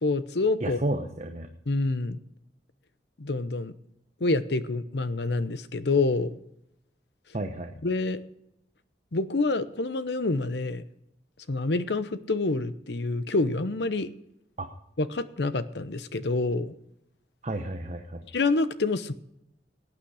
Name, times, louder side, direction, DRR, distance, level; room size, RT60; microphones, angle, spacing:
voice 1, 0.0-0.8 1.7-2.2 3.2-3.7 4.2-6.4 7.8-8.2 9.1-10.8 11.5-14.1 15.0-16.7 18.3-19.1, left 3 dB, 65° left, 13 dB, 0.9 m, -27 dB
voice 2, 0.6-1.5 7.3-7.7 14.6-14.7 17.4-18.3, right 1 dB, 40° right, 5 dB, 1.0 m, -32 dB
18.0 x 9.0 x 4.9 m, 0.80 s
head